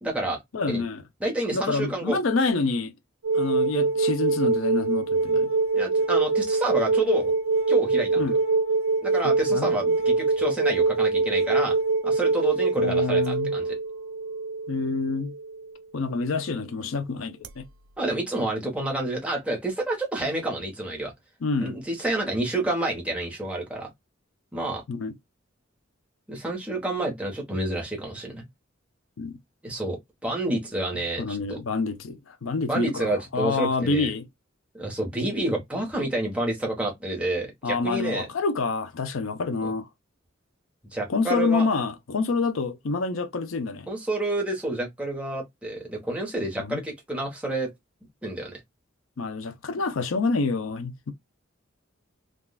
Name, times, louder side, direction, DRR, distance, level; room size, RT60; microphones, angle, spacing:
voice 1, 0.0-0.4 0.7-0.8 1.2-2.2 5.7-7.3 7.7-8.2 9.0-11.8 12.0-13.8 18.0-21.1 21.6-23.9 24.5-24.8 26.3-28.4 29.6-30.0 30.2-31.6 32.7-34.1 34.7-38.3 39.6-39.7 40.9-41.7 43.9-47.7 48.2-48.6, right 2 dB, 5° right, 1.1 m, -29 dB
voice 2, 0.5-1.0 1.5-2.9 3.3-5.5 8.2-8.4 9.2-10.0 12.8-13.5 14.7-15.3 15.9-17.7 21.4-21.8 24.9-25.1 29.2-29.4 31.2-34.3 37.6-39.9 41.1-43.9 46.6-46.8 49.2-51.1, left 4 dB, 90° left, 0.6 m, -27 dB
sound 1, 3.2-15.7 17.4-17.5, right 3 dB, 90° right, 0.4 m, -24 dB
3.6 x 2.4 x 2.3 m
head